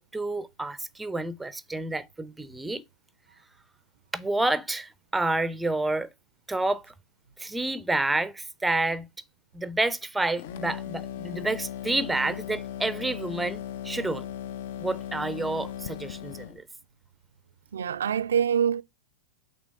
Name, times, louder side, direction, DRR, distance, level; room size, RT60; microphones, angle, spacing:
voice 1, 0.0-2.8 4.1-6.1 6.5-6.9 7.4-9.1 9.5-14.2 14.8-16.6, right 2 dB, 5° right, 0.5 m, -29 dB
sound 1, 10.4-16.6, left 10 dB, 55° left, 0.5 m, -37 dB
voice 2, 17.7-18.8, right 8 dB, 65° right, 0.3 m, -25 dB
6.0 x 3.4 x 5.3 m
figure-of-eight pair, 90°, 0 cm